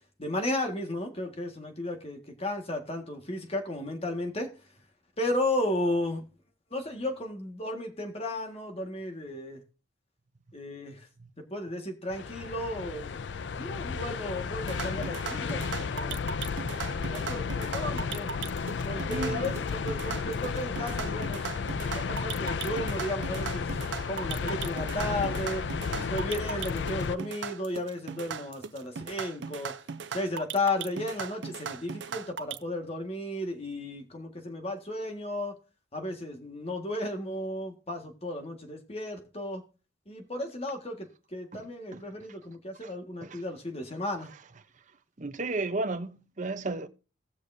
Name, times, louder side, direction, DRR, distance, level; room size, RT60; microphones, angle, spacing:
voice 1, 0.2-4.5 5.2-6.2 6.7-9.6 10.5-11.0 11.5-13.2 13.6-16.3 16.9-18.3 18.8-23.7 24.1-25.7 25.9-29.7 30.1-35.5 35.9-39.6 40.1-41.1 41.3-44.3, left 1 dB, 30° left, 1.7 m, -34 dB
sound 1, 12.1-27.2, left 5 dB, 65° left, 0.4 m, -33 dB
sound 2, 14.6-32.6, right 6 dB, 70° right, 0.6 m, -38 dB
voice 2, 19.1-19.5 41.9-42.0 42.8-42.9 43.2-43.4 45.2-46.9, right 3 dB, 40° right, 0.8 m, -33 dB
18.5 x 6.5 x 2.7 m
head